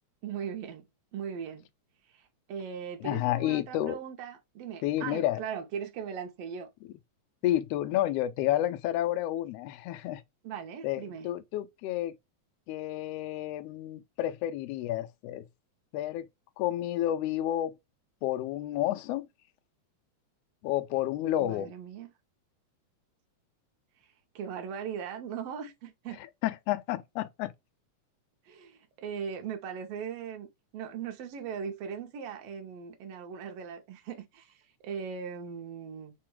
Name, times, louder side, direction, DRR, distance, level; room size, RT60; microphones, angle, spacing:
voice 1, 0.2-0.9 1.1-1.7 2.1-6.7 10.4-11.3 21.4-22.1 24.4-26.2 28.5-30.5 30.7-36.1, right 7 dB, 70° right, 1.7 m, -39 dB
voice 2, 3.0-4.0 4.8-5.4 7.4-10.2 10.8-12.2 12.7-15.5 15.9-16.3 16.6-17.8 18.2-19.3 20.6-21.7 26.2-27.5, left 13 dB, 85° left, 1.4 m, -30 dB
4.6 x 2.2 x 4.4 m
omnidirectional pair, 3.3 m